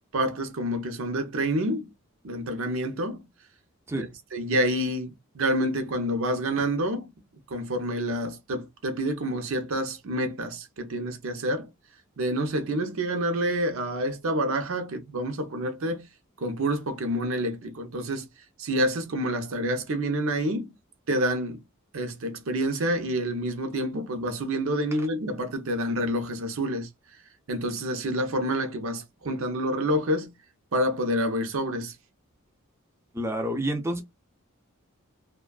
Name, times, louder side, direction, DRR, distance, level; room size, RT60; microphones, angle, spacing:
voice 1, 0.1-1.9 2.2-3.2 3.9-7.1 7.5-11.7 12.2-16.1 16.4-18.3 18.6-20.8 21.1-21.6 21.9-26.9 27.5-30.3 30.7-32.0, right 1 dB, 70° right, 0.6 m, -28 dB
voice 2, 33.1-34.0, right 1 dB, 10° right, 0.4 m, -28 dB
2.5 x 2.2 x 2.3 m
head